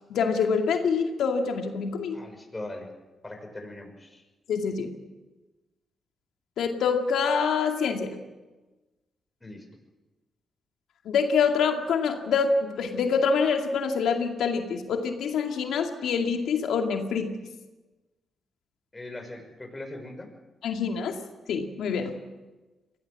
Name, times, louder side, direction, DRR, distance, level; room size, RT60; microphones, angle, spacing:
voice 1, 0.1-2.2 4.5-4.9 6.6-8.1 11.1-17.3 20.6-21.1 21.5-22.2, left 5 dB, 80° left, 4 dB, 2.3 m, -26 dB
voice 2, 2.1-2.9 3.2-4.2 9.4-9.7 18.9-20.3, left 2 dB, 20° left, 4 dB, 5.9 m, -40 dB
22.0 x 17.0 x 7.6 m, 1.2 s
cardioid pair, 65°, 0 cm